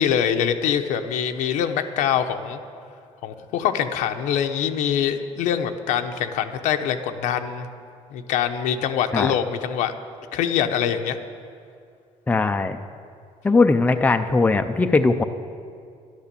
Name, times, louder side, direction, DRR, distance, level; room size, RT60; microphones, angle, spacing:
voice 1, 0.0-2.6 3.2-7.7 8.1-9.9 10.3-11.2, left 9 dB, 90° left, 6 dB, 0.9 m, -24 dB
voice 2, 12.3-12.8 13.4-15.2, left 3 dB, 10° left, 7 dB, 0.5 m, -19 dB
12.0 x 11.5 x 6.9 m, 2.3 s
cardioid pair, 140°, 12 cm